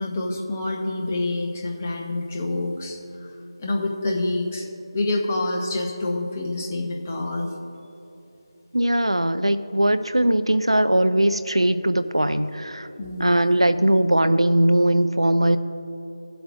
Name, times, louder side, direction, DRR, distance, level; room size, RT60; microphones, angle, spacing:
voice 1, 0.0-3.3 3.6-4.7 4.9-7.5 13.0-13.5, left 2 dB, 20° left, -1 dB, 0.9 m, -27 dB
voice 2, 8.7-12.9 13.2-15.6, right 1 dB, 80° right, 11 dB, 0.5 m, -20 dB
21.5 x 7.8 x 2.6 m, 3.0 s
figure-of-eight pair, 165°, 3 cm